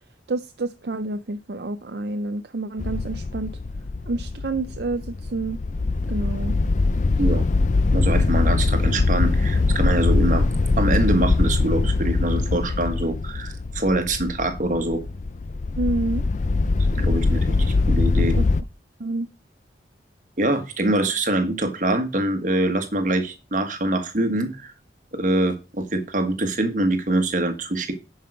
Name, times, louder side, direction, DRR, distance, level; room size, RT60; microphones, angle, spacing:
voice 1, 0.3-3.6 4.1-5.6 6.1-6.5 15.8-16.2 18.4-18.5 19.0-19.3, right 2 dB, 65° right, 0.5 m, -28 dB
sound 1, 2.8-18.6, left 3 dB, 40° left, 0.4 m, -22 dB
voice 2, 7.9-10.5 10.8-15.0 17.0-18.3 20.4-24.7 25.1-27.9, right 1 dB, 45° right, 1.5 m, -24 dB
10.5 x 5.6 x 4.9 m
head